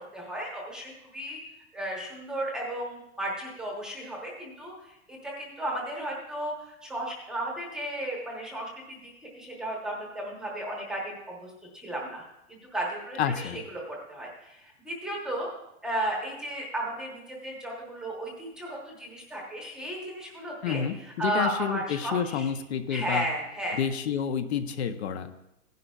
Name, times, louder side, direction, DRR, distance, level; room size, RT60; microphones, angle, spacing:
voice 1, 0.1-1.4 1.7-12.2 12.5-15.5 15.8-22.5 22.9-23.8, right 1 dB, ahead, -2 dB, 0.9 m, -34 dB
voice 2, 13.2-13.6 20.6-23.3 23.7-25.3, left 8 dB, 60° left, 10 dB, 0.7 m, -29 dB
16.0 x 10.5 x 2.3 m, 0.87 s
supercardioid pair, 175°, 38 cm